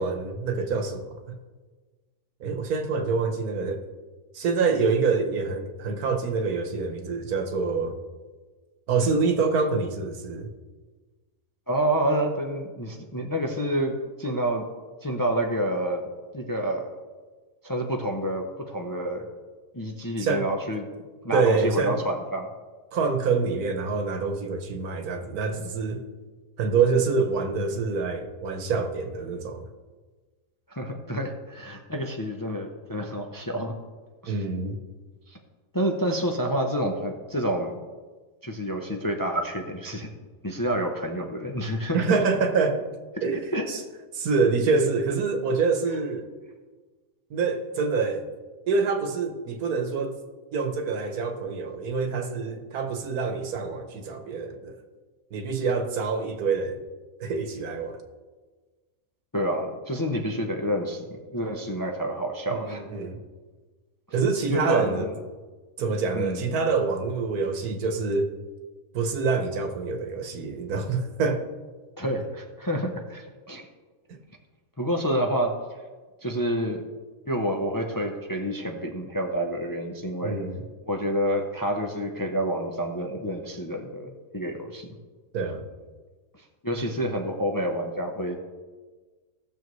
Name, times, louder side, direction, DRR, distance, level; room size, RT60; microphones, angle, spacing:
voice 1, 0.0-1.4 2.4-3.8 4.3-7.9 8.9-10.5 20.2-20.5 21.3-22.0 22.9-26.0 26.6-29.7 34.3-34.8 41.9-42.9 43.2-43.8 44.1-46.3 47.3-48.2 48.7-50.2 50.5-54.7 55.3-56.9 57.2-58.0 62.5-63.2 64.1-65.1 65.8-68.3 68.9-71.5 74.1-74.2 80.2-80.6 85.3-85.6, right 4 dB, 90° right, 6 dB, 1.5 m, -26 dB
voice 2, 11.7-14.7 15.0-16.9 17.6-19.3 19.7-20.9 21.2-22.5 30.7-33.7 34.2-34.4 35.3-35.4 35.7-37.7 38.4-40.1 40.4-42.0 43.3-43.7 59.3-62.8 64.5-65.1 66.1-66.4 72.0-73.6 74.8-75.6 76.2-76.8 77.3-80.4 80.9-84.9 86.3-88.4, equal, 20° left, 2 dB, 0.5 m, -28 dB
16.5 x 6.8 x 3.1 m, 1.4 s
omnidirectional pair, 1.5 m